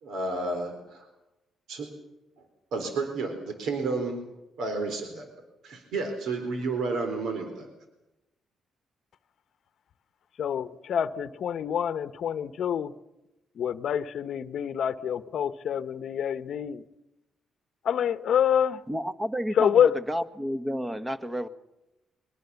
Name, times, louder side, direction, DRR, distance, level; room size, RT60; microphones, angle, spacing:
voice 1, 0.0-1.1 1.7-1.9 2.7-4.2 4.6-5.3 5.6-7.7, right 3 dB, 75° right, 4.0 m, -31 dB
voice 2, 10.4-12.9 13.6-16.8 17.8-18.8 19.6-20.0, left 9 dB, 65° left, 0.9 m, -26 dB
voice 3, 18.9-19.8 20.1-21.5, equal, 15° right, 1.5 m, -30 dB
23.0 x 21.5 x 7.0 m
cardioid pair, 90°, 0 cm